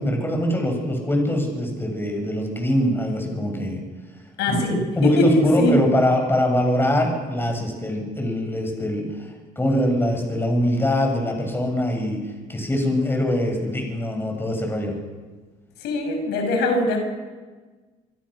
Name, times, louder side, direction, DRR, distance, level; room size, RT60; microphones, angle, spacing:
voice 1, 0.0-3.8 4.5-4.6 5.0-12.2 12.5-14.9, left 1 dB, 15° left, 2 dB, 7.1 m, -23 dB
voice 2, 4.4-5.8 15.8-17.0, left 1 dB, 85° left, 5 dB, 6.1 m, -21 dB
25.5 x 24.5 x 6.5 m, 1.4 s
cardioid pair, 110°, 17 cm